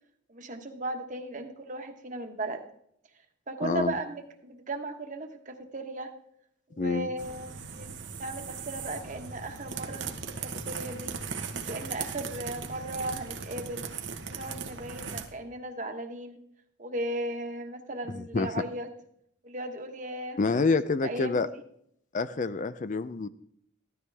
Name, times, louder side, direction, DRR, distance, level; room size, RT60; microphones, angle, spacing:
voice 1, 0.3-2.6 3.5-6.1 6.7-7.9 8.2-11.1 11.7-13.9 14.3-16.4 16.8-18.9 19.4-20.5 21.0-21.6, right 2 dB, 40° right, 5 dB, 1.4 m, -36 dB
voice 2, 3.6-4.0 6.8-7.1 18.1-18.6 20.4-21.5 22.1-23.3, left 3 dB, 40° left, 13 dB, 0.5 m, -27 dB
sound 1, 7.2-15.3, right 5 dB, 80° right, 1.2 m, -38 dB
15.0 x 12.5 x 3.5 m, 0.70 s
head